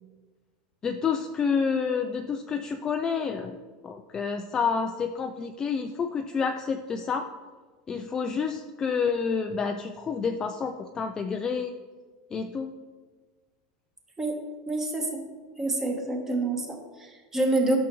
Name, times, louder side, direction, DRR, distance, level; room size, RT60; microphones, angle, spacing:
voice 1, 0.8-3.6 3.8-7.2 7.9-11.7 12.3-12.7, left 5 dB, 15° left, 5 dB, 0.3 m, -29 dB
voice 2, 14.2-15.2 15.6-17.8, right 2 dB, 10° right, 2 dB, 1.1 m, -28 dB
12.5 x 6.3 x 3.0 m, 1.4 s
supercardioid pair, 160°, 4 cm